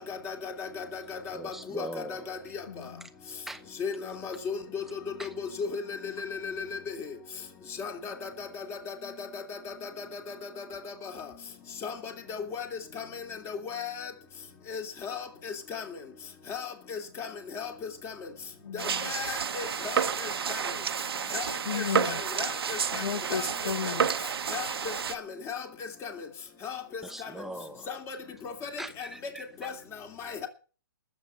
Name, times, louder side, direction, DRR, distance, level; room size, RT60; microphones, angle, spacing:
voice 1, 0.0-2.6 3.8-4.8 5.2-5.3 5.6-7.1 7.8-10.0 10.6-11.1 11.8-12.7 12.9-14.1 14.7-15.8 16.5-17.7 18.0-18.1 18.7-20.6 21.3-21.5 21.7-23.0 23.3-23.5 24.5-24.7 25.1-25.2 25.5-25.7 26.0-26.1 26.6-27.3 27.9-28.2 28.4-29.1 29.6-29.7 30.2-30.4, left 6 dB, 20° left, 2.8 m, -37 dB
voice 2, 1.3-2.4 3.5-3.6 5.2-5.3 27.0-27.9 28.8-29.7, right 1 dB, ahead, 0.9 m, -41 dB
voice 3, 2.7-3.1 18.6-19.1 21.7-22.2 22.9-24.1, left 7 dB, 70° left, 0.9 m, -34 dB
sound 1, 18.8-25.1, right 7 dB, 75° right, 1.3 m, -30 dB
20.0 x 7.9 x 5.6 m
hypercardioid pair, 140°, 13 cm